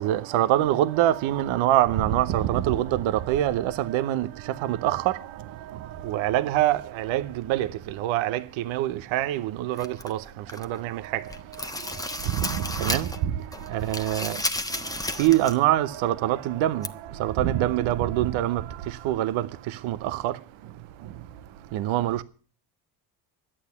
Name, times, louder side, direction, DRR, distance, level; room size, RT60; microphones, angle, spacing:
voice 1, 0.0-14.4 14.7-22.2, right 13 dB, 70° right, 0.9 m, -26 dB
sound 1, 9.8-10.8 11.2-13.2 13.5-15.6 15.9-16.0 16.8-16.9, left 2 dB, 5° left, 1.1 m, -33 dB
11.5 x 8.6 x 8.5 m
hypercardioid pair, 65°, 49 cm